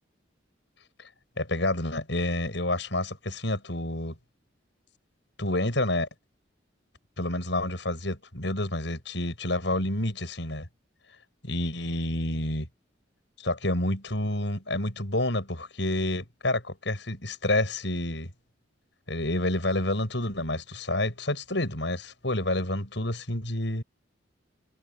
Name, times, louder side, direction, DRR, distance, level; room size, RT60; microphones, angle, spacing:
voice 1, 1.4-4.2 5.4-6.1 7.2-10.7 11.4-12.7 13.4-18.3 19.1-23.8, left 1 dB, 70° left, 7.0 m, -29 dB
head